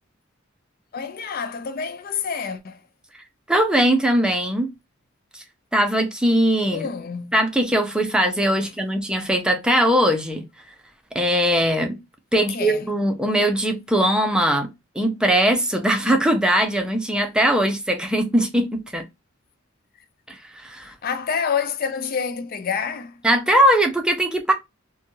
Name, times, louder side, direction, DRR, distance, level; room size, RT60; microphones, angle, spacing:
voice 1, 0.9-2.8 6.7-7.4 8.6-8.7 12.3-12.8 20.8-23.2, left 6 dB, 45° left, 0.5 m, -28 dB
voice 2, 3.5-4.7 5.3-5.4 5.7-6.9 7.3-10.4 11.1-12.0 12.3-19.0 20.3-20.9 23.2-24.5, right 1 dB, 5° right, 0.6 m, -20 dB
3.1 x 2.3 x 2.6 m
head